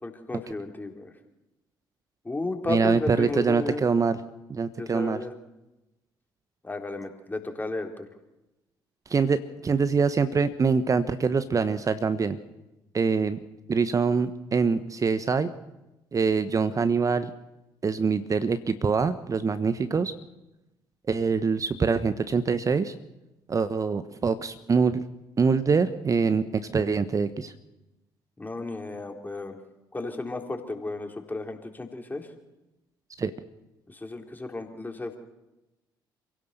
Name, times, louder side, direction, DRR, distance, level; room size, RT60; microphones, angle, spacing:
voice 1, 0.0-1.1 2.2-3.8 4.8-5.3 6.6-8.1 28.4-29.6 29.9-32.3 33.9-35.2, left 2 dB, 15° left, 4 dB, 4.0 m, -33 dB
voice 2, 2.7-4.2 4.5-5.2 9.1-12.4 12.9-13.4 13.7-15.5 16.1-17.3 17.8-20.1 21.1-22.9 23.5-25.0 25.4-27.5 33.2-33.3, right 5 dB, 30° right, 12 dB, 1.3 m, -24 dB
28.0 x 17.0 x 6.8 m, 1.0 s
figure-of-eight pair, 45°, 11 cm